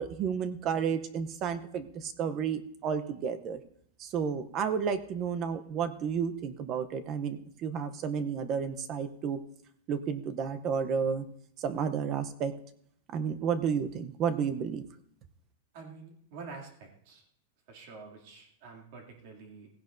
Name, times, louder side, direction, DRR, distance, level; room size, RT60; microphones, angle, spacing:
voice 1, 0.0-3.6 4.0-9.4 9.9-11.3 11.6-12.5 13.1-14.8, right 7 dB, 25° right, 11 dB, 0.7 m, -31 dB
voice 2, 15.7-17.2 17.7-19.7, right 4 dB, 45° right, 1 dB, 2.5 m, -47 dB
17.0 x 16.0 x 2.6 m, 0.68 s
supercardioid pair, 170°, 0 cm